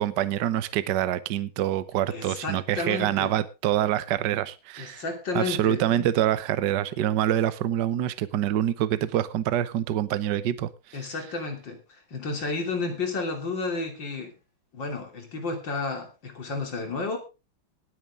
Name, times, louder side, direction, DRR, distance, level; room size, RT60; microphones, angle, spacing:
voice 1, 0.0-5.0 5.3-11.1, right 11 dB, 65° right, 1.3 m, -26 dB
voice 2, 2.1-3.3 4.8-5.8 10.9-14.3 14.7-17.2, left 3 dB, 60° left, 3.7 m, -32 dB
19.0 x 9.6 x 3.6 m
omnidirectional pair, 2.3 m